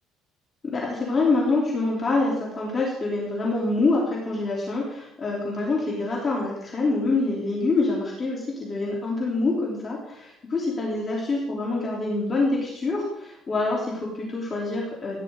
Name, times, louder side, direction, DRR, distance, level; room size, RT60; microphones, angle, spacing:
voice 1, 0.8-15.2, left 3 dB, 25° left, -5 dB, 3.7 m, -26 dB
15.5 x 10.5 x 4.0 m, 0.79 s
cardioid pair, 125°, 0 cm